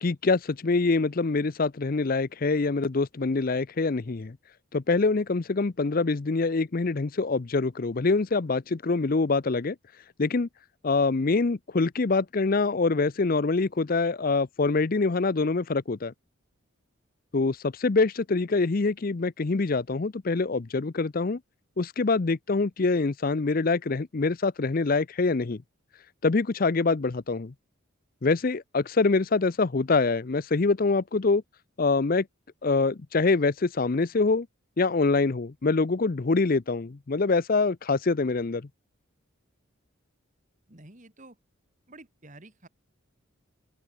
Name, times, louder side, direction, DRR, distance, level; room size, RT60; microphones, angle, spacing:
voice 1, 0.0-4.4 4.7-9.8 10.2-10.5 10.8-16.1 17.3-21.4 21.8-25.6 26.2-27.5 28.2-31.4 31.8-32.2 32.6-34.5 34.8-38.7, left 3 dB, 40° left, 0.5 m, -25 dB
voice 2, 40.7-41.4 41.9-42.7, right 2 dB, 35° right, 2.2 m, -50 dB
head